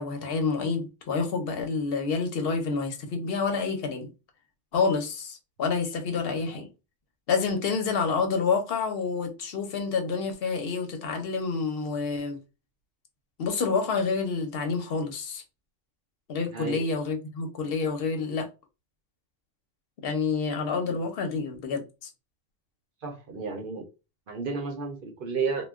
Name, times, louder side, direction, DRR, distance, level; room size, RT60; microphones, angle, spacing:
voice 1, 0.0-4.1 4.7-6.7 7.3-12.4 13.4-15.4 16.3-18.5 20.0-22.1, left 4 dB, 60° left, 0.8 m, -28 dB
voice 2, 16.5-16.8 20.9-21.0 23.0-23.8 24.3-25.7, right 4 dB, 55° right, 0.7 m, -32 dB
2.2 x 2.2 x 3.5 m
omnidirectional pair, 1.2 m